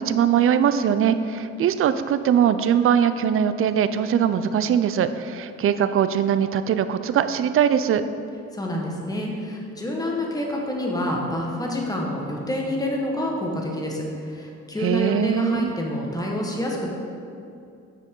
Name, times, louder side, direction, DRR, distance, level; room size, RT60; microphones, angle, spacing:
voice 1, 0.0-8.0 14.8-15.7, right 8 dB, 45° right, 11 dB, 0.4 m, -21 dB
voice 2, 8.5-16.9, left 1 dB, 10° left, -1 dB, 1.4 m, -28 dB
7.5 x 6.3 x 3.8 m, 2.5 s
cardioid pair, 90°, 30 cm